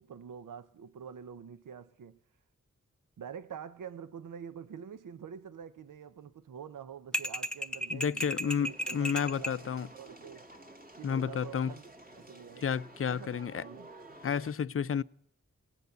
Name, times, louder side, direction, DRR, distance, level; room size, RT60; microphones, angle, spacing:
voice 1, 0.0-2.2 3.2-10.4 10.9-11.8 12.1-12.7 13.1-13.9, right 7 dB, 85° right, 0.6 m, -46 dB
sound 1, 7.1-9.6, equal, 5° left, 0.9 m, -34 dB
voice 2, 7.9-9.9 11.0-11.7 12.6-13.7 14.2-15.0, left 7 dB, 45° left, 0.5 m, -31 dB
sound 2, 8.6-14.5, right 2 dB, 30° right, 1.6 m, -52 dB
17.5 x 8.1 x 7.9 m
cardioid pair, 40°, 31 cm